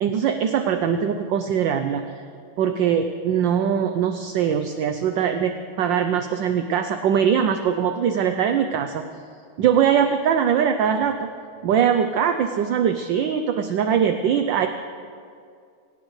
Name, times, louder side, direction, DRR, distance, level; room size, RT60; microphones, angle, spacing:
voice 1, 0.0-2.0 2.6-9.0 9.6-11.3 11.6-14.7, right 8 dB, 70° right, 7 dB, 1.2 m, -21 dB
24.5 x 17.0 x 3.2 m, 2.3 s
omnidirectional pair, 2.4 m